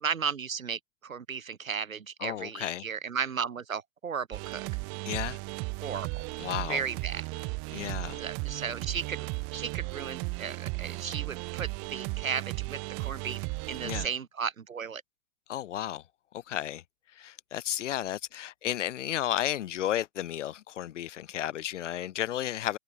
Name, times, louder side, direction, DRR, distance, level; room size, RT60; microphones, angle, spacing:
voice 1, 0.0-4.6 5.8-6.2 6.7-7.2 7.7-7.9 8.2-9.3 9.5-15.0, right 6 dB, 80° right, 1.6 m, -35 dB
voice 2, 2.2-2.8 5.1-5.4 6.4-6.8 7.7-8.2 13.8-14.1 15.5-16.0 16.3-16.8 17.1-22.8, left 12 dB, 60° left, 3.1 m, -33 dB
sound 1, 4.3-14.1, right 33 dB, 35° right, 1.1 m, -35 dB
figure-of-eight pair, 100°, 40 cm